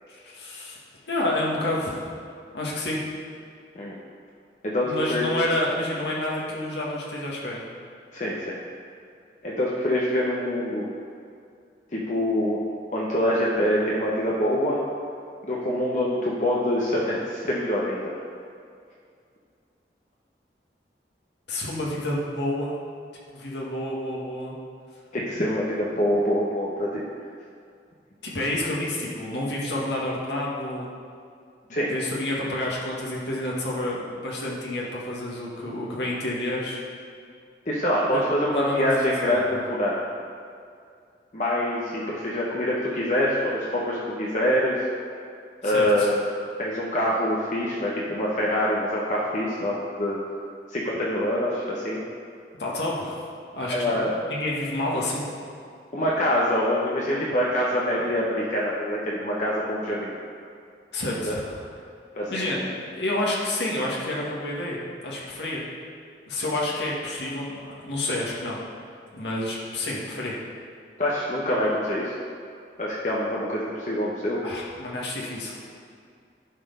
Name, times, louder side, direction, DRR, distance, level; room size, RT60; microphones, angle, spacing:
voice 1, 0.1-0.8 1.1-2.1 2.5-3.0 4.9-7.6 21.5-22.7 23.3-24.5 28.2-30.9 31.9-36.8 38.1-38.2 38.5-39.6 45.6-46.1 52.6-53.3 53.5-55.3 60.9-61.5 62.3-64.8 65.0-65.6 66.3-68.6 69.1-70.4 74.4-75.6, left 1 dB, 85° left, -4 dB, 1.8 m, -29 dB
voice 2, 4.6-5.3 8.1-8.6 9.4-10.9 11.9-12.6 12.9-14.8 15.4-18.1 25.1-27.0 31.7-31.9 37.7-40.0 41.3-44.8 45.6-46.3 46.6-50.2 50.7-52.0 53.7-54.1 55.9-60.1 61.2-61.3 62.1-62.4 71.0-72.1 72.8-74.4, left 1 dB, 45° left, -5 dB, 0.9 m, -25 dB
11.0 x 4.3 x 5.4 m, 2.3 s
head